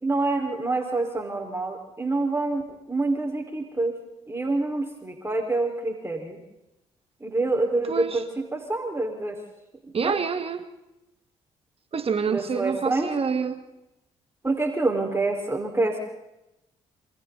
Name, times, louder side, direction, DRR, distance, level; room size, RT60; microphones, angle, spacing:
voice 1, 0.0-2.6 2.9-3.9 4.3-6.4 7.2-8.2 8.5-9.4 10.0-10.2 12.3-13.1 14.4-16.0, right 2 dB, 15° right, 2 dB, 5.1 m, -26 dB
voice 2, 7.9-8.2 9.9-10.7 11.9-13.6, right 6 dB, 45° right, 8 dB, 2.1 m, -27 dB
28.5 x 27.5 x 4.2 m, 0.92 s
hypercardioid pair, 50°, 14 cm